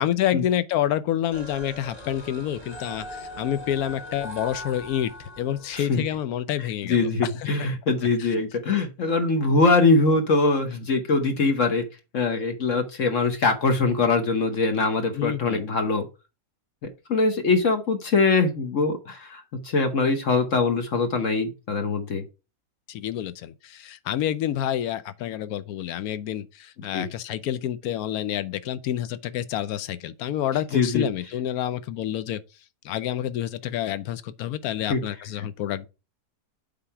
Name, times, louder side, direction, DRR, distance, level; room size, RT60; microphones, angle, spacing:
voice 1, 0.0-5.1 5.4-7.5 8.2-8.3 15.1-15.7 22.9-32.4 32.8-35.9, left 11 dB, 75° left, 1.0 m, -28 dB
sound 1, 1.3-6.2, equal, 25° left, 1.7 m, -40 dB
voice 2, 5.7-6.0 6.8-11.8 12.1-16.1 17.1-22.2 26.9-27.1 30.7-31.1 34.9-35.0 35.4-35.5, left 3 dB, 55° left, 1.3 m, -22 dB
8.0 x 3.9 x 4.7 m
omnidirectional pair, 1.7 m